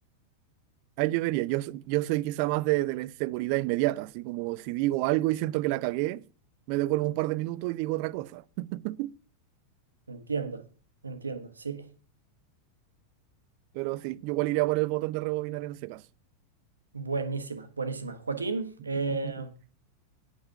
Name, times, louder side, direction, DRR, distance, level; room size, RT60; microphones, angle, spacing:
voice 1, 1.0-6.2 6.7-9.1 13.7-16.0 19.1-19.3, right 19 dB, 45° right, 0.4 m, -29 dB
voice 2, 10.1-10.6 11.0-11.8 16.9-19.5, right 4 dB, 75° right, 1.3 m, -33 dB
9.6 x 5.4 x 5.7 m
figure-of-eight pair, 90°, 0 cm